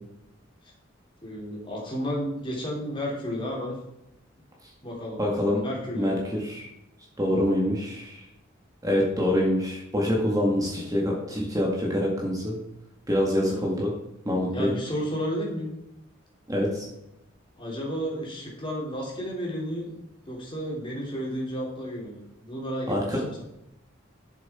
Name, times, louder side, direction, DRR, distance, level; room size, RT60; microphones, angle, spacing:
voice 1, 1.2-3.8 4.8-5.2 5.6-6.2 13.3-13.6 14.5-15.7 17.6-20.0 20.3-23.4, equal, 25° left, -3 dB, 3.3 m, -32 dB
voice 2, 5.2-5.6 6.0-6.7 7.2-8.3 8.8-12.6 13.1-13.9 14.3-14.7 16.5-16.9 22.9-23.3, left 1 dB, 15° right, -2 dB, 1.9 m, -25 dB
11.5 x 7.4 x 4.4 m, 0.86 s
head